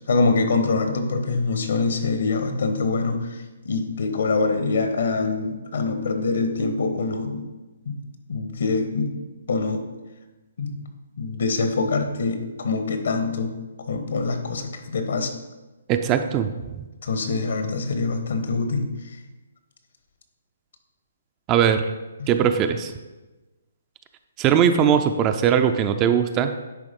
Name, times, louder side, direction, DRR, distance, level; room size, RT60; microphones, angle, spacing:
voice 1, 0.1-7.5 7.8-8.0 8.3-9.8 10.6-10.9 11.2-15.3 17.0-18.9 22.2-22.3, left 3 dB, 70° left, 6 dB, 1.3 m, -24 dB
voice 2, 15.9-16.8 21.5-21.9 22.3-22.9 24.4-26.5, right 8 dB, 20° right, 8 dB, 0.4 m, -20 dB
10.0 x 3.4 x 5.3 m, 1.1 s
hypercardioid pair, 150°, 0 cm